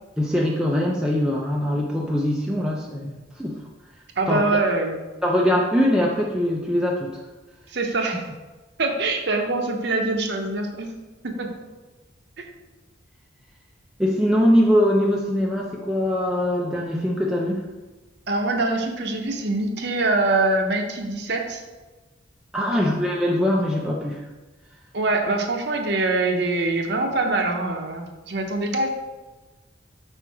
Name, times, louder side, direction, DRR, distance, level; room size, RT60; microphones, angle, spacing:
voice 1, 0.2-3.6 4.3-4.4 5.2-7.2 14.0-17.6 22.5-24.2, equal, 5° right, -3 dB, 0.4 m, -22 dB
voice 2, 4.2-5.0 7.7-8.2 8.8-10.9 11.2-11.5 12.4-12.5 18.3-21.6 22.7-22.9 24.9-28.9, right 2 dB, 60° right, 3 dB, 0.8 m, -24 dB
4.9 x 4.5 x 4.7 m, 1.2 s
head